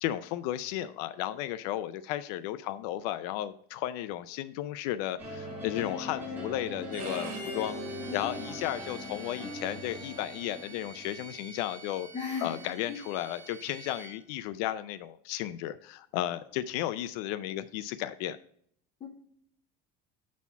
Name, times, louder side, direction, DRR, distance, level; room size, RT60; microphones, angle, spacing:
voice 1, 0.0-7.8 8.1-12.1 12.4-18.4, left 13 dB, 90° left, 13 dB, 0.5 m, -34 dB
sound 1, 5.2-11.4, left 1 dB, 5° right, 3.2 m, -40 dB
Bowed string instrument, 6.9-14.1, right 3 dB, 45° right, 2.5 m, -47 dB
voice 2, 7.7-8.6 12.1-13.0 19.0-19.1, left 4 dB, 30° left, 0 dB, 1.8 m, -39 dB
7.1 x 4.2 x 5.5 m, 0.64 s
cardioid pair, 160°, 20 cm